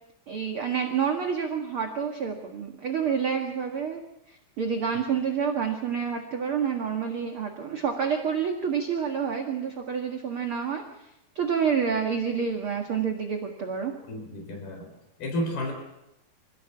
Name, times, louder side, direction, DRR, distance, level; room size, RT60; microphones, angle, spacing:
voice 1, 0.3-4.0 4.3-10.8 11.4-13.9, right 7 dB, 45° right, 3 dB, 2.1 m, -28 dB
voice 2, 14.1-14.9 15.2-15.7, left 1 dB, 80° left, 3 dB, 6.2 m, -31 dB
26.5 x 16.0 x 7.2 m, 0.89 s
omnidirectional pair, 4.3 m